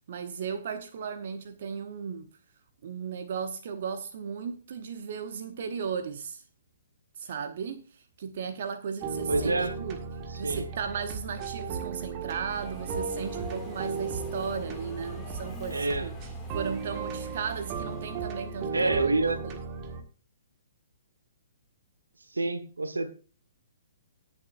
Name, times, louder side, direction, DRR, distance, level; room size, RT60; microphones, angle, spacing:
voice 1, 0.1-2.3 2.8-6.4 7.2-10.0 10.3-16.1 16.5-19.1 19.4-19.6, right 6 dB, 50° right, 0.9 m, -36 dB
sound 1, 9.0-20.0, right 5 dB, 30° right, 1.7 m, -36 dB
voice 2, 9.3-9.7 10.4-10.7 15.7-16.1 18.7-19.4 22.3-23.1, right 2 dB, 80° right, 1.2 m, -27 dB
Subway metro underground, 12.5-18.7, left 4 dB, 15° left, 2.1 m, -47 dB
18.5 x 7.2 x 2.5 m
figure-of-eight pair, 125°, 0 cm